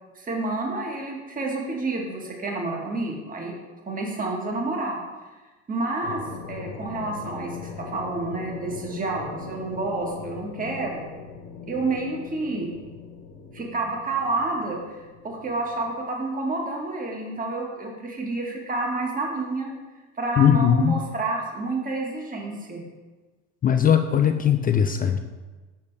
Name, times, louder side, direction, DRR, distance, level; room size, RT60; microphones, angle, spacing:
voice 1, 0.1-3.5 3.9-5.0 5.7-6.2 6.5-11.0 11.7-12.7 13.5-14.8 15.2-19.7 20.2-22.8, right 3 dB, 20° right, 0 dB, 1.7 m, -29 dB
sound 1, 6.0-15.9, left 5 dB, 70° left, 1.4 m, -40 dB
voice 2, 20.4-21.0 23.6-25.2, left 8 dB, 25° left, 7 dB, 0.4 m, -19 dB
6.9 x 6.5 x 3.4 m, 1.2 s
hypercardioid pair, 80°, 37 cm